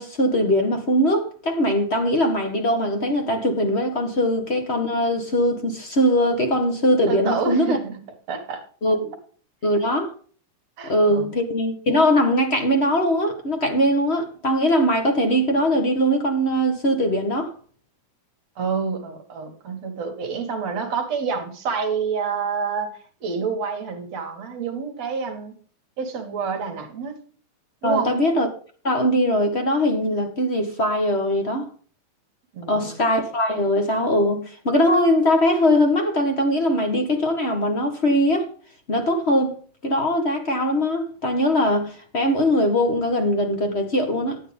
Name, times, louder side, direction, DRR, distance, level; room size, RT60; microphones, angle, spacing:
voice 1, 0.0-7.8 8.8-9.1 9.6-10.1 10.8-17.5 27.8-28.5 28.8-31.7 32.7-38.5 38.9-39.6 39.8-44.4, equal, 35° left, 1.0 m, -21 dB
voice 2, 7.1-8.0 8.3-8.7 10.8-11.3 18.6-25.6 26.0-27.2 27.8-28.1 32.5-33.0, right 5 dB, 55° right, 2.9 m, -28 dB
12.0 x 9.5 x 3.5 m
omnidirectional pair, 3.8 m